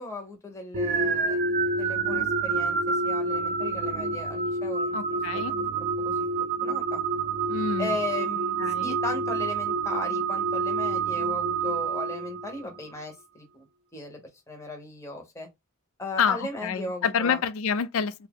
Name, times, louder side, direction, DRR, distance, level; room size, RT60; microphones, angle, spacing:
voice 1, 0.0-1.4 1.7-5.2 6.0-6.1 6.6-7.0 7.8-13.7 13.9-14.2 14.5-15.5 16.0-17.4, left 2 dB, 15° left, 0.8 m, -37 dB
sound 1, 0.7-12.7, right 4 dB, 40° right, 0.4 m, -28 dB
voice 2, 4.9-5.5 7.5-8.0 8.6-9.0 16.2-18.3, left 6 dB, 70° left, 0.4 m, -28 dB
2.8 x 2.2 x 3.4 m
head